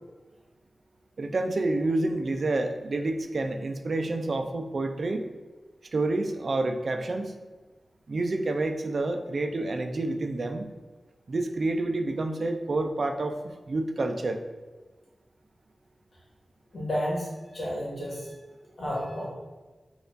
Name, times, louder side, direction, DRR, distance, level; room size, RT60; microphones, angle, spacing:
voice 1, 1.2-5.3 5.9-7.3 8.1-10.7 11.3-13.4 13.7-14.4, right 2 dB, 55° right, 5 dB, 0.3 m, -28 dB
voice 2, 16.7-18.4 18.8-19.3, equal, 75° left, -6 dB, 1.3 m, -31 dB
4.2 x 2.4 x 2.5 m, 1.2 s
wide cardioid pair, 105°, 0 cm